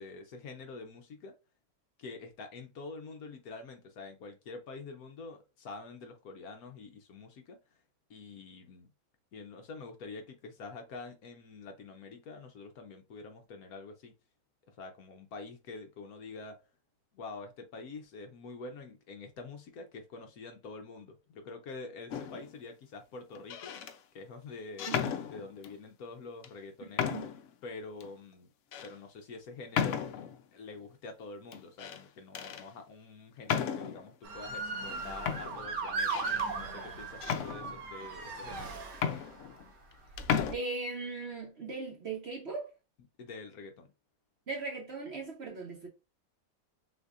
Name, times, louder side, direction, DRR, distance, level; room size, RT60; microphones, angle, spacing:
voice 1, 0.0-1.3 2.0-7.8 8.1-8.9 9.3-14.1 14.7-16.6 17.1-23.8 24.1-24.9 25.3-27.2 27.6-28.5 28.8-30.0 30.5-36.2 36.6-38.7 43.2-43.9, left 3 dB, 65° left, 1.1 m, -46 dB
sound 1, 22.1-22.5 23.4-24.0 24.8-25.8 26.4-26.5 27.0-27.5 28.0-28.1 28.7-28.9 29.7-30.4 31.5-32.0 32.3-32.7 33.5-34.1 34.9-35.0 35.3-36.5 37.2-38.1 38.6-38.7 38.9-39.9 40.2-40.5, left 8 dB, 85° left, 0.6 m, -34 dB
voice 2, 26.8-27.3 40.4-42.7 44.5-45.9, right 3 dB, 50° right, 0.9 m, -39 dB
Motor vehicle (road) / Siren, 34.2-39.5 40.1-40.5, right 4 dB, 80° right, 1.6 m, -37 dB
6.2 x 2.6 x 2.4 m
omnidirectional pair, 1.8 m